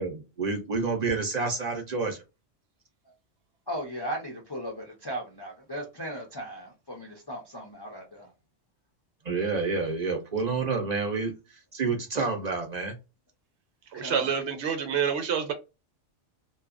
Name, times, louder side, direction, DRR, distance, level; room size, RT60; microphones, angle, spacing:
voice 1, 0.0-2.2 9.2-13.0, right 4 dB, 45° right, 0.6 m, -29 dB
voice 2, 3.7-8.3 13.9-14.3, right 1 dB, 35° left, 0.4 m, -37 dB
voice 3, 13.9-15.5, right 7 dB, 70° right, 0.9 m, -27 dB
2.7 x 2.3 x 2.4 m
omnidirectional pair, 1.2 m